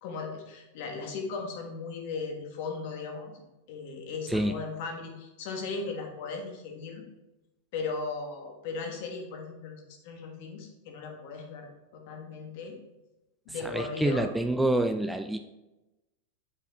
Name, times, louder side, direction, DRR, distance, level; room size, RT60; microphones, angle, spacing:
voice 1, 0.0-3.3 3.7-7.0 7.7-12.8 13.4-14.3, left 4 dB, 60° left, 3 dB, 1.4 m, -37 dB
voice 2, 4.3-4.6 13.6-15.4, right 1 dB, 5° right, 7 dB, 0.3 m, -27 dB
7.3 x 4.2 x 3.5 m, 1.0 s
hypercardioid pair, 115°, 0 cm